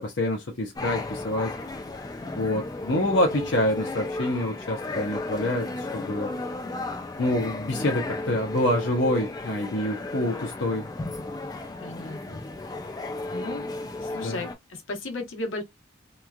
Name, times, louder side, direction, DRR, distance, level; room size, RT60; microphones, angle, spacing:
voice 1, 0.0-1.5 2.3-6.3 7.2-10.9 14.2-14.4, left 1 dB, 65° left, 0.6 m, -26 dB
sound 1, 0.8-14.5, left 2 dB, 20° left, 0.3 m, -34 dB
voice 2, 2.9-3.2 11.8-12.4 13.3-13.6 14.0-15.6, left 2 dB, 85° left, 1.0 m, -35 dB
3.0 x 2.3 x 2.2 m
head